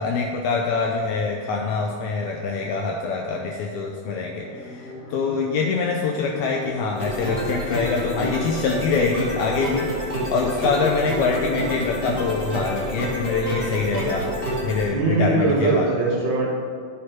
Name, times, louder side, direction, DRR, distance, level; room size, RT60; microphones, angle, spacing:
voice 1, 0.0-14.3 14.6-15.9, left 4 dB, 80° left, 1 dB, 1.8 m, -25 dB
sound 1, 4.4-15.1, left 3 dB, 60° left, 3.1 m, -39 dB
sound 2, 6.9-14.8, equal, 30° left, 1.1 m, -28 dB
voice 2, 14.9-16.5, right 3 dB, 90° right, -5 dB, 0.9 m, -21 dB
11.0 x 5.3 x 4.4 m, 2.1 s
omnidirectional pair, 3.8 m